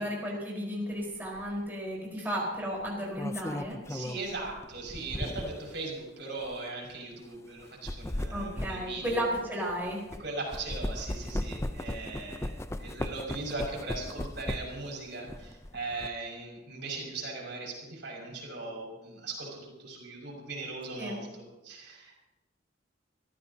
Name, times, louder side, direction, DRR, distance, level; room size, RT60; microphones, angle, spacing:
voice 1, 0.0-3.8 8.3-10.1 21.0-21.2, equal, 10° right, -4 dB, 4.5 m, -33 dB
sound 1, 1.3-1.5 2.8-5.7 6.4-6.5 7.6-10.2 10.5-14.9 15.2-16.1, left 1 dB, 15° left, 0.6 m, -37 dB
voice 2, 3.9-9.2 10.2-22.2, right 3 dB, 65° right, -1 dB, 6.1 m, -39 dB
27.0 x 14.0 x 2.9 m, 1.0 s
head